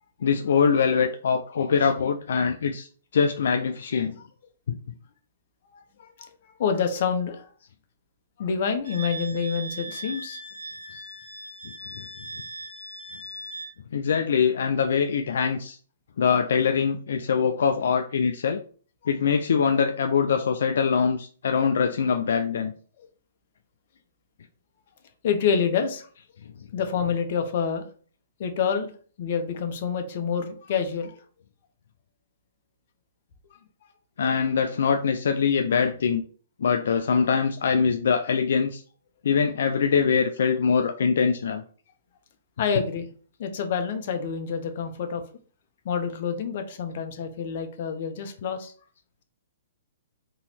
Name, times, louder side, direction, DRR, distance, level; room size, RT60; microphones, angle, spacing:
voice 1, 0.2-4.2 4.7-4.8 10.9-11.0 12.0-12.1 13.9-15.8 16.2-18.6 19.1-22.7 34.2-36.2 36.6-38.8 39.2-41.6 42.7-42.8, left 6 dB, 75° left, 6 dB, 0.4 m, -23 dB
voice 2, 5.7-6.3 6.6-7.5 8.4-10.4 25.2-26.1 26.7-27.9 28.4-28.9 29.2-31.2 42.6-43.1 43.4-45.2 45.8-48.7, left 6 dB, 50° left, 6 dB, 0.8 m, -27 dB
Wind instrument woodwind instrument, 8.8-13.7, right 2 dB, 85° right, 1.9 m, -39 dB
3.7 x 3.0 x 4.3 m, 0.43 s
hypercardioid pair, 160°, 0 cm